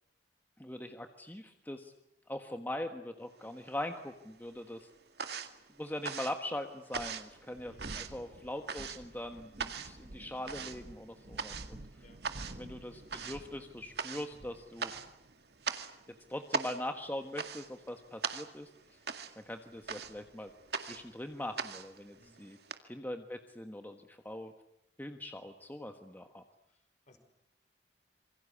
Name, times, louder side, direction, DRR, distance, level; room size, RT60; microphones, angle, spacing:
voice 1, 0.6-1.9 2.3-4.9 5.8-11.8 12.6-14.9 16.3-19.0 19.4-20.5 20.8-22.6 22.8-24.5 25.0-26.4, left 1 dB, 10° left, 6 dB, 1.4 m, -42 dB
sound 1, 3.4-4.2 4.5-22.8, right 5 dB, 65° right, 2.1 m, -41 dB
sound 2, 4.5-4.6 6.7-22.3, right 1 dB, 45° right, 1.1 m, -53 dB
voice 2, 7.6-7.9 12.0-12.2 12.9-13.0 22.2-22.5 26.7-26.8 27.1-27.2, left 1 dB, 45° left, 8 dB, 5.1 m, -62 dB
27.0 x 24.0 x 8.4 m, 0.84 s
head